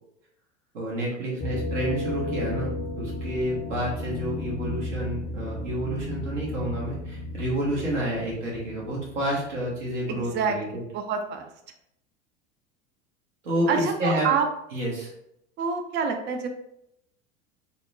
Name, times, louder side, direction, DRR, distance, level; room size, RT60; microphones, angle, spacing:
voice 1, 0.7-10.8 13.4-14.3 14.7-15.1, right 1 dB, 75° right, -4 dB, 1.1 m, -29 dB
sound 1, 1.4-10.1, left 2 dB, 30° left, 0.5 m, -34 dB
voice 2, 10.1-11.5 13.7-14.5 15.6-16.5, right 6 dB, 30° right, 5 dB, 0.4 m, -27 dB
2.8 x 2.0 x 2.5 m, 0.78 s
figure-of-eight pair, 75°, 36 cm